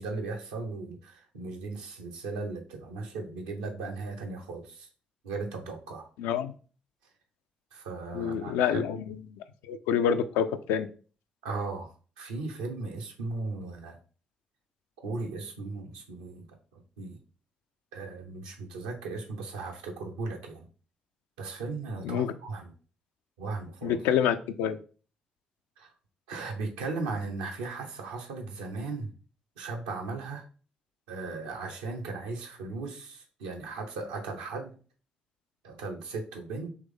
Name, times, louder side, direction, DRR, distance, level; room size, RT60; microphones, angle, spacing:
voice 1, 0.0-4.9 5.2-6.1 7.7-8.9 11.4-11.9 12.2-14.0 15.0-17.2 17.9-20.7 21.4-22.7 23.4-24.0 25.8-25.9 26.3-29.1 29.6-30.4 31.1-34.7 35.6-36.7, right 3 dB, 80° right, 3 dB, 0.7 m, -37 dB
voice 2, 6.2-6.5 8.1-9.0 9.3-10.9 22.0-22.3 23.8-24.8, left 8 dB, 70° left, 10 dB, 0.3 m, -27 dB
3.5 x 3.1 x 3.5 m, 0.38 s
figure-of-eight pair, 40°, 4 cm